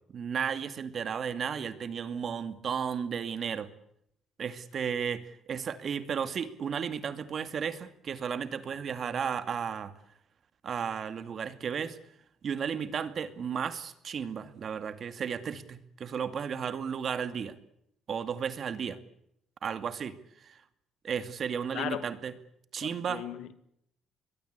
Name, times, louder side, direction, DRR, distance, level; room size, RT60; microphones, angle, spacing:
voice 1, 0.1-3.7 4.4-9.9 10.6-12.0 12.4-17.6 18.1-19.0 19.6-20.2 20.4-20.6 21.0-22.3 22.7-23.3, right 7 dB, 50° right, 2.4 m, -34 dB
voice 2, 21.7-22.1 22.8-23.6, left 12 dB, 85° left, 2.2 m, -37 dB
23.5 x 21.5 x 8.3 m
cardioid pair, 110°, 0 cm